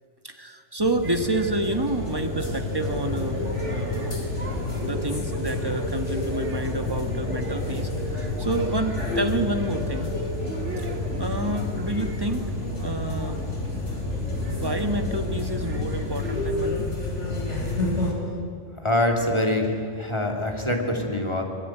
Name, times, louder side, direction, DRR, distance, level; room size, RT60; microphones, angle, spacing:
voice 1, 0.2-4.2 4.7-10.2 10.8-12.5 12.8-13.4 14.5-16.9, right 2 dB, 20° right, 6 dB, 1.6 m, -29 dB
sound 1, 0.8-18.1, left 2 dB, 80° left, 4.6 m, -30 dB
sound 2, 1.0-16.5, right 2 dB, 80° right, 2.9 m, -37 dB
voice 2, 18.8-21.4, left 1 dB, 25° left, 2 dB, 3.0 m, -24 dB
25.5 x 19.5 x 9.2 m, 2.4 s
omnidirectional pair, 1.2 m